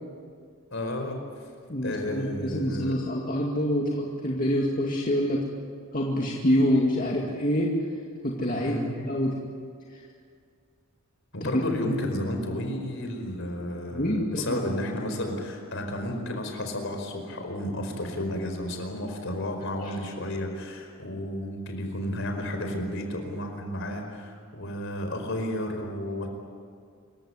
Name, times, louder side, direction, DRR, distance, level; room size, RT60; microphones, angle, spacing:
voice 1, 0.7-1.2 1.8-2.9 8.6-9.0 11.3-26.3, left 1 dB, 65° left, 3 dB, 4.8 m, -32 dB
voice 2, 1.7-5.4 5.9-7.7 8.2-9.4 9.9-10.0 11.4-11.6 13.9-14.6 19.8-19.9, equal, 40° left, -2 dB, 2.3 m, -26 dB
27.0 x 15.5 x 10.0 m, 2.2 s
head